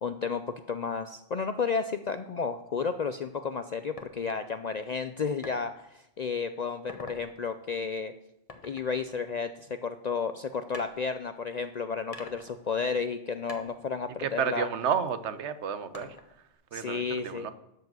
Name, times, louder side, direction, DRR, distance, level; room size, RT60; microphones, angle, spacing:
voice 1, 0.0-8.1 8.6-14.7 16.7-17.5, left 5 dB, 55° left, 10 dB, 0.4 m, -32 dB
sound 1, 4.0-4.1 5.4-5.6 6.1-6.4 6.7-7.2 8.5-10.0 10.7-11.6 12.1-13.2 13.5-15.1 15.9-16.5, left 3 dB, 30° left, 1.2 m, -47 dB
voice 2, 14.2-16.2 16.7-17.5, right 7 dB, 75° right, 12 dB, 1.1 m, -31 dB
12.5 x 4.9 x 7.7 m, 0.86 s
omnidirectional pair, 1.2 m